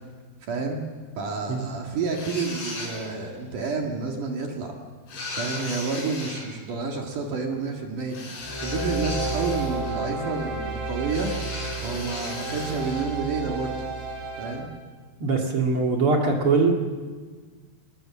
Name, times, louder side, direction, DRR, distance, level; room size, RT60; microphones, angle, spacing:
voice 1, 0.5-0.8 1.2-4.7 5.3-8.2 8.6-11.3 11.8-13.9 14.4-14.7, right 4 dB, 60° right, 1 dB, 3.2 m, -29 dB
sound 1, 2.1-3.3 5.1-6.5 8.1-10.1 11.1-13.1, left 2 dB, 75° left, 7.6 m, -36 dB
sound 2, 8.4-14.6, right 3 dB, 85° right, 6.0 m, -32 dB
voice 2, 15.2-16.8, right 4 dB, 40° right, 1 dB, 2.4 m, -22 dB
22.0 x 20.0 x 7.4 m, 1.5 s
omnidirectional pair, 4.6 m